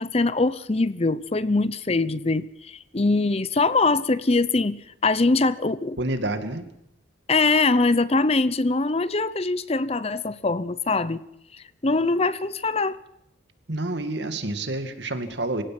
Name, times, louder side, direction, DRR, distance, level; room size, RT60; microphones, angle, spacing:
voice 1, 0.0-4.8 5.0-6.0 7.3-11.2 11.5-13.0, left 3 dB, 30° left, 0.7 m, -23 dB
voice 2, 6.0-6.6 13.7-15.6, right 2 dB, 65° right, 2.3 m, -28 dB
27.0 x 16.5 x 6.0 m
head